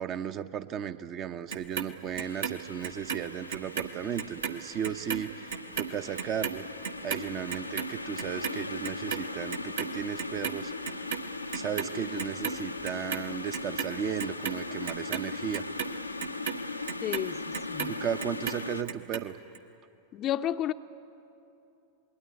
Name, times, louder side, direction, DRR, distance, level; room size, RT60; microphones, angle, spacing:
voice 1, 0.0-6.6 7.0-11.1 11.5-15.6 17.9-19.4, right 9 dB, 35° right, 0.8 m, -35 dB
Clock, 1.5-3.9 4.2-10.6 10.8-11.9 12.2-13.2 13.5-17.9 18.2-19.2 19.5-19.6, right 7 dB, 65° right, 1.4 m, -35 dB
sound 1, 2.2-18.8, left 3 dB, 85° left, 0.7 m, -39 dB
voice 2, 17.0-17.9 20.1-20.7, left 11 dB, 35° left, 0.6 m, -32 dB
27.0 x 21.0 x 9.6 m
figure-of-eight pair, 90°, 0 cm